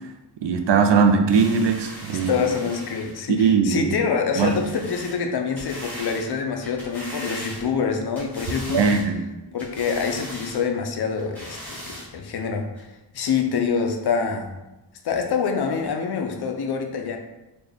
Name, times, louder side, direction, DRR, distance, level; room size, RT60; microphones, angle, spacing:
voice 1, 0.4-2.3 3.3-3.9 4.4-4.6 8.7-9.2, right 5 dB, 75° right, 5 dB, 0.5 m, -19 dB
sound 1, 1.3-3.3 4.3-5.2 5.6-6.2 6.6-7.8 8.2-9.1 9.6-10.6 11.2-12.1 12.8-12.9, equal, 5° left, 1.2 m, -39 dB
voice 2, 2.1-8.9 9.5-12.9 13.1-14.5 15.0-17.2, left 6 dB, 65° left, 4 dB, 0.5 m, -26 dB
4.0 x 2.3 x 3.3 m, 0.98 s
wide cardioid pair, 150°, 43 cm